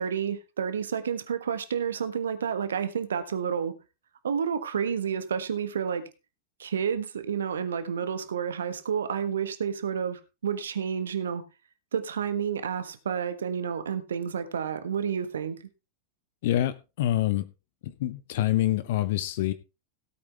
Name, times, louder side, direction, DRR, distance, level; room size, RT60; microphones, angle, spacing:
voice 1, 0.0-3.7 4.2-6.1 6.6-11.4 11.9-15.6, right 7 dB, 65° right, 1.4 m, -30 dB
voice 2, 16.4-17.5 17.8-19.5, left 13 dB, 55° left, 0.7 m, -26 dB
17.0 x 8.5 x 3.4 m
figure-of-eight pair, 90°, 0 cm